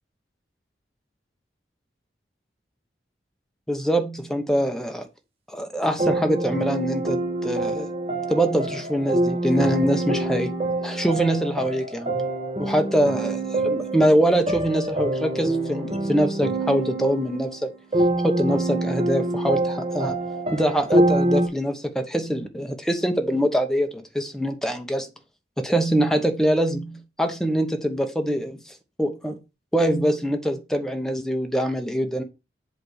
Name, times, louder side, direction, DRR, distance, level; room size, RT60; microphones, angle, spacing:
voice 1, 3.7-5.1 5.5-7.9 8.3-10.5 10.8-12.1 12.6-13.4 13.6-17.7 18.2-20.2 20.5-25.1 25.6-29.4 29.7-32.2, equal, 5° left, 0.8 m, -24 dB
sound 1, 6.0-21.5, right 2 dB, 35° right, 1.3 m, -26 dB
8.0 x 3.4 x 6.3 m
head